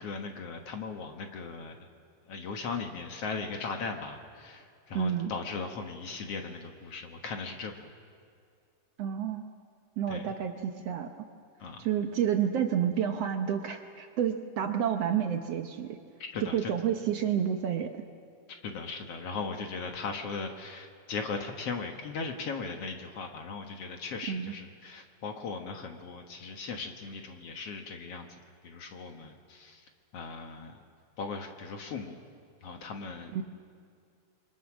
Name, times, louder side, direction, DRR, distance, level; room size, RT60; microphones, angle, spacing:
voice 1, 0.0-1.9 2.3-7.9 10.1-10.3 11.6-11.9 16.3-16.7 18.6-28.3 28.6-29.8 30.1-30.8 31.2-32.2 32.6-33.4, left 4 dB, 55° left, 4 dB, 2.2 m, -38 dB
voice 2, 5.0-5.3 9.0-9.5 10.0-11.1 11.8-16.0 16.4-18.0 24.3-24.5 33.3-33.4, right 9 dB, 65° right, 5 dB, 1.8 m, -29 dB
27.5 x 24.0 x 6.2 m, 2.3 s
omnidirectional pair, 3.5 m